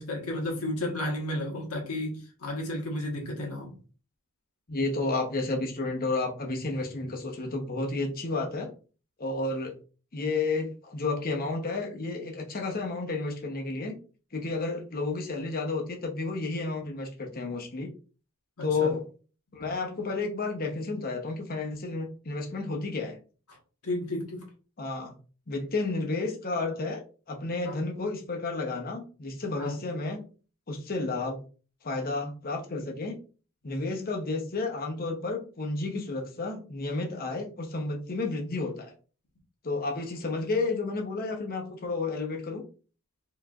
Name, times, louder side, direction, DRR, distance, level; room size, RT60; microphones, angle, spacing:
voice 1, 0.0-3.7 18.6-18.9 23.5-23.6 23.8-24.4 27.7-27.8 29.6-29.8, left 1 dB, 80° left, 1.4 m, -33 dB
voice 2, 4.7-8.7 9.2-9.7 10.1-14.0 14.3-17.9 18.6-19.0 19.5-23.2 24.8-25.1 25.5-27.0 27.3-30.2 30.7-31.4 31.8-33.2 33.6-38.9 39.6-42.6, left 3 dB, 40° left, 0.9 m, -31 dB
4.7 x 3.2 x 2.4 m
head